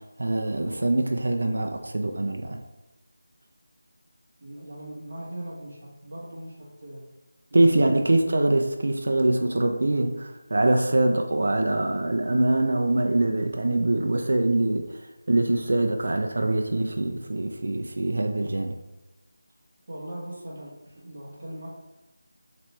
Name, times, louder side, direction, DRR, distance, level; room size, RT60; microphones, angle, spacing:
voice 1, 0.0-2.6 7.5-18.7, right 2 dB, 60° right, 3 dB, 0.4 m, -24 dB
voice 2, 4.4-7.1 7.5-8.1 19.9-21.8, right 1 dB, 40° right, -6 dB, 1.1 m, -40 dB
3.0 x 2.9 x 3.2 m, 1.0 s
figure-of-eight pair, 175°, 0 cm